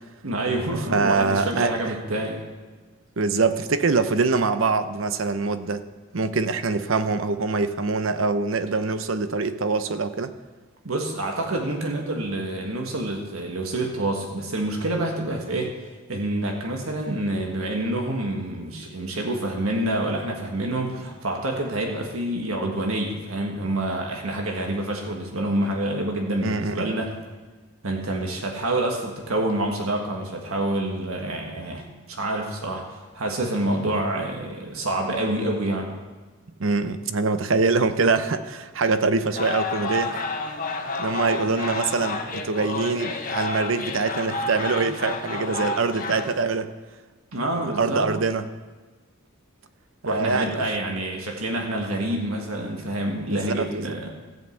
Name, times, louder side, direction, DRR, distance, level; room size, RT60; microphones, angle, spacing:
voice 1, 0.2-2.4 10.8-15.7 16.1-27.1 27.8-35.9 47.3-48.1 50.0-54.1, right 1 dB, 85° right, 1 dB, 1.5 m, -27 dB
voice 2, 0.9-1.9 3.2-5.8 6.1-10.3 26.4-26.7 36.6-40.2 41.0-46.7 47.6-48.4 50.1-50.5 53.3-53.9, right 4 dB, 65° right, 11 dB, 0.7 m, -24 dB
sound 1, 39.3-46.4, left 3 dB, 40° left, 1.0 m, -30 dB
14.0 x 5.5 x 7.9 m, 1.3 s
head